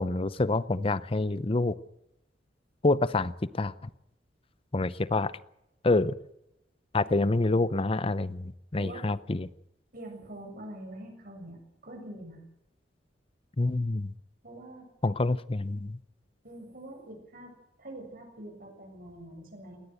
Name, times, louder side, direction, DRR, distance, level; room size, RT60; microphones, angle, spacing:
voice 1, 0.0-1.7 2.8-3.9 4.7-5.3 5.8-6.1 6.9-9.5 13.6-14.1 15.0-16.0, left 2 dB, 30° left, 16 dB, 0.7 m, -27 dB
voice 2, 7.1-7.7 8.8-9.0 9.9-11.6 11.8-12.4 14.4-14.9 16.4-19.8, right 1 dB, 55° right, 3 dB, 7.4 m, -45 dB
20.0 x 17.0 x 8.0 m, 0.85 s
head